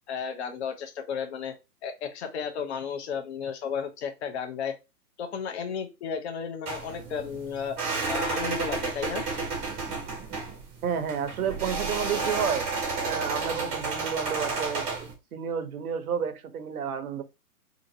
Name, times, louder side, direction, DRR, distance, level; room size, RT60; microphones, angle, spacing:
voice 1, 0.1-1.5 1.8-4.8 5.2-7.8 8.1-9.2, left 6 dB, 45° left, 0.7 m, -33 dB
sound 1, 6.6-15.1, right 4 dB, 15° right, 0.7 m, -31 dB
voice 2, 10.8-12.6 13.0-17.2, right 7 dB, 65° right, 0.8 m, -31 dB
2.9 x 2.5 x 2.6 m
hypercardioid pair, 140°, 47 cm